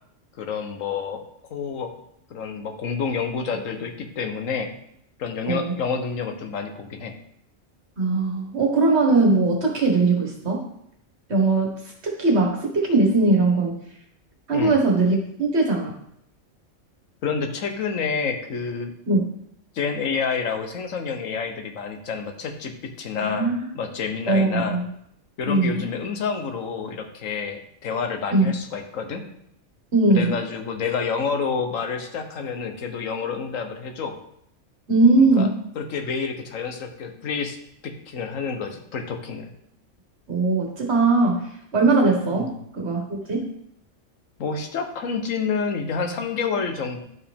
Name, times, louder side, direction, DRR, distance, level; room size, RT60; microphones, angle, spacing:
voice 1, 0.4-1.2 1.5-1.9 2.3-4.7 5.2-7.2 14.5-14.7 17.2-18.9 19.7-22.7 23.0-24.8 25.4-29.2 30.1-34.2 35.3-35.5 35.7-37.6 37.8-39.5 42.3-42.5 44.4-47.0, left 5 dB, 85° left, 6 dB, 1.3 m, -28 dB
voice 2, 8.0-10.7 11.3-11.7 12.2-13.8 14.5-15.9 19.1-19.2 23.2-23.7 24.3-24.9 25.4-25.9 28.3-28.5 29.9-30.4 34.9-35.5 40.3-43.5, right 3 dB, 55° right, 0 dB, 1.9 m, -20 dB
11.5 x 4.8 x 3.6 m, 0.72 s
omnidirectional pair, 1.3 m